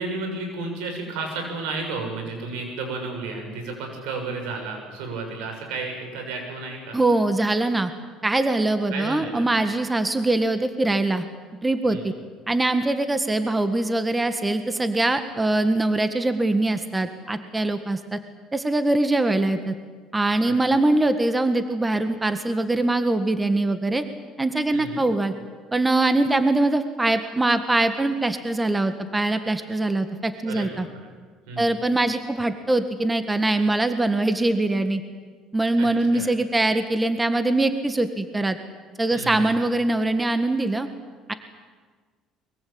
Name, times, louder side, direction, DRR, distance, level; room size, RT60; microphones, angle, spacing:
voice 1, 0.0-7.0 8.9-9.5 11.9-12.1 24.7-25.0 30.4-30.9 31.5-31.8 35.8-36.3 39.1-39.6, right 3 dB, 90° right, 3 dB, 7.1 m, -32 dB
voice 2, 6.9-7.9 8.2-11.2 11.6-12.1 12.5-18.2 18.5-19.7 20.1-24.0 24.4-25.3 25.7-30.8 31.6-35.0 35.5-38.6 39.0-40.9 41.3-41.4, right 2 dB, 15° right, 9 dB, 1.7 m, -22 dB
22.5 x 22.5 x 8.7 m, 1.5 s
cardioid pair, 115°, 0 cm